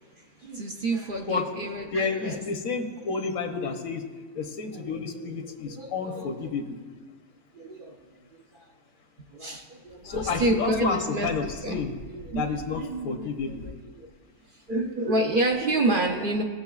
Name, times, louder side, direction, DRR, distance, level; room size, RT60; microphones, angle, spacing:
voice 1, 0.2-2.4 3.0-3.1 4.7-6.6 7.0-7.1 7.5-8.0 8.3-8.7 9.2-11.3 11.6-11.8 12.1-13.3 13.6-14.1 14.5-16.4, right 2 dB, 50° right, 1 dB, 0.7 m, -29 dB
voice 2, 1.9-4.0 4.3-6.7 10.0-11.9 12.3-13.7, left 4 dB, 80° left, 5 dB, 1.3 m, -30 dB
18.0 x 7.1 x 2.4 m, 1.5 s
omnidirectional pair, 1.4 m